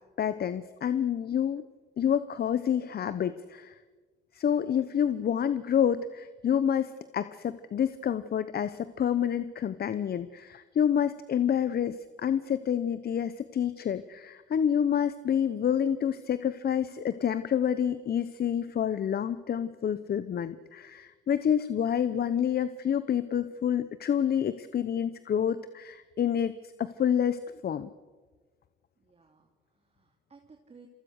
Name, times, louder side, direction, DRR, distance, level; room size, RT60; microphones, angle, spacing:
voice 1, 0.2-1.6 2.0-3.7 4.3-26.5 26.8-27.9, left 8 dB, 50° left, 13 dB, 1.0 m, -28 dB
voice 2, 29.0-30.9, right 5 dB, 30° right, 2 dB, 3.0 m, -57 dB
28.5 x 23.5 x 6.6 m, 1.4 s
cardioid pair, 90°, 20 cm